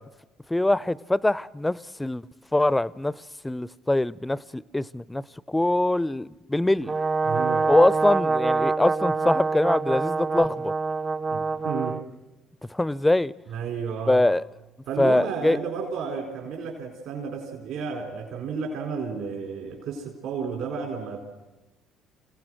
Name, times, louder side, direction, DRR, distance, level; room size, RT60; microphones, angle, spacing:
voice 1, 0.5-2.2 2.5-5.2 5.5-6.9 7.7-10.7 12.7-13.3 14.1-14.4 15.0-15.6, left 1 dB, 10° left, 0.6 m, -23 dB
Brass instrument, 6.9-12.0, right 4 dB, 30° right, 0.6 m, -25 dB
voice 2, 7.2-7.7 11.3-12.0 13.5-14.2 14.9-21.2, right 5 dB, 65° right, 4.0 m, -32 dB
27.5 x 17.0 x 6.3 m
hypercardioid pair, 55°, 0 cm